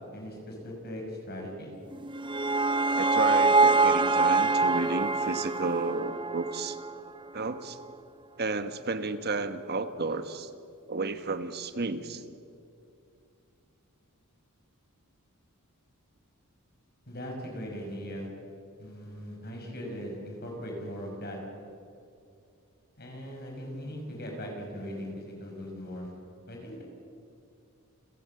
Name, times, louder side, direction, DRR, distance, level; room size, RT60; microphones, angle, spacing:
voice 1, 0.1-1.7 17.1-18.3 18.8-21.4 23.0-26.1 26.5-26.8, equal, 50° left, 1 dB, 5.8 m, -39 dB
sound 1, 1.9-7.1, right 3 dB, 20° right, 0.6 m, -25 dB
voice 2, 3.0-6.8 7.3-7.8 8.4-10.5 10.9-12.2, right 3 dB, 50° right, 10 dB, 1.3 m, -32 dB
29.5 x 14.5 x 7.8 m, 2.5 s
head